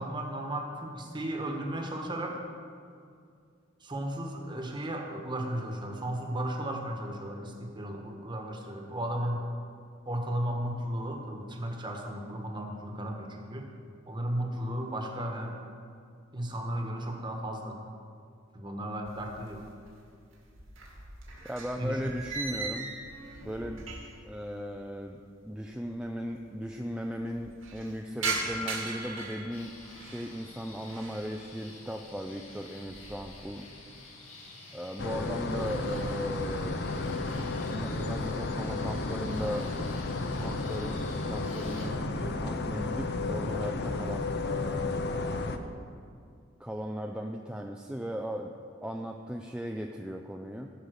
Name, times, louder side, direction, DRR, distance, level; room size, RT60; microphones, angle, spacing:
voice 1, 0.0-2.4 3.8-9.5 10.0-13.7 14.1-15.6 16.3-17.8 18.5-19.6 21.8-22.0, right 1 dB, 25° right, 2 dB, 1.2 m, -35 dB
sound 1, 19.1-19.9 20.2-24.3 24.6-24.7 25.6-25.7 25.8-25.9 26.2-26.7 27.1-30.3 30.7-31.2 31.7-32.1 32.5-33.4, right 3 dB, 85° right, 2.4 m, -38 dB
voice 2, 21.5-23.0 23.4-23.8 24.2-29.7 30.0-33.7 34.7-36.8 37.6-40.0 40.3-45.0 46.6-48.5 48.8-50.7, equal, 5° right, 3 dB, 0.4 m, -37 dB
sound 2, 29.5-41.9, left 2 dB, 90° left, 2.3 m, -50 dB
sound 3, 35.0-45.6, left 3 dB, 55° left, 0.6 m, -33 dB
15.0 x 5.3 x 6.5 m, 2.3 s
head